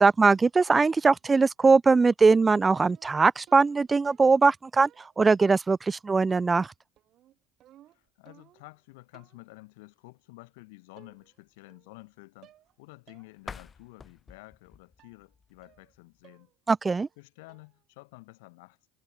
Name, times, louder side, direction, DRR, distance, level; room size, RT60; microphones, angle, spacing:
voice 1, 0.0-6.7 16.7-17.1, right 4 dB, 20° right, 0.4 m, -21 dB
sound 1, 0.7-1.2 2.3-4.5 4.8-5.4 6.3-6.7 7.0-8.8 9.1-9.5 10.4-10.5 11.0-11.4 11.7-12.1 12.4-12.7 13.1-13.3 13.7-13.8 15.0-15.2 15.6-15.9 16.2-16.6 16.8-17.2 17.5-17.8, right 13 dB, 55° right, 6.4 m, -59 dB
voice 2, 7.9-12.5 12.8-16.5 17.2-18.8, left 25 dB, 90° left, 7.6 m, -51 dB
sound 2, 13.4-16.2, left 5 dB, 25° left, 1.3 m, -48 dB
supercardioid pair, 115°, 0 cm